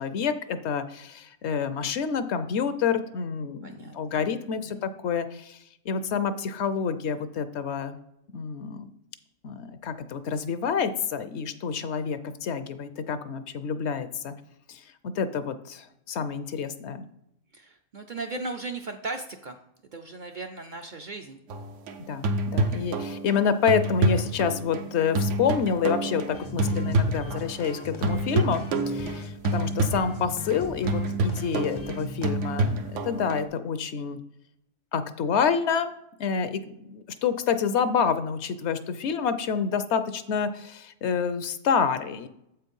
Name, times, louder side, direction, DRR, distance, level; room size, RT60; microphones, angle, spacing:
voice 1, 0.0-5.6 5.9-8.0 8.3-8.9 9.4-14.3 14.7-17.0 22.1-34.2 34.9-35.9 36.2-42.3, left 6 dB, 70° left, 11 dB, 0.8 m, -28 dB
voice 2, 3.6-4.3 4.6-4.8 17.5-19.6 19.9-21.4, right 3 dB, 55° right, 4 dB, 0.5 m, -37 dB
sound 1, 21.5-27.8 28.0-33.5, right 2 dB, 80° right, 1.1 m, -28 dB
sound 2, 26.3-32.3, left 4 dB, 45° left, 0.3 m, -40 dB
7.8 x 4.4 x 5.3 m, 0.79 s
omnidirectional pair, 1.3 m